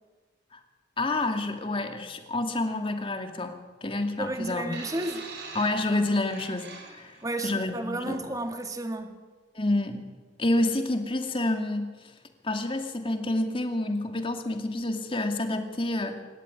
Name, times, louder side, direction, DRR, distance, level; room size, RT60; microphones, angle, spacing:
voice 1, 1.0-4.8 5.5-7.2 7.4-8.2 9.5-10.1 10.4-11.9 12.4-16.2, left 2 dB, 30° left, 2.3 m, -28 dB
voice 2, 4.2-5.2 7.2-9.2, right 1 dB, 20° right, 1.9 m, -32 dB
sound 1, 4.7-7.3 8.2-8.4, right 4 dB, 65° right, 4.7 m, -43 dB
26.5 x 13.5 x 9.8 m
head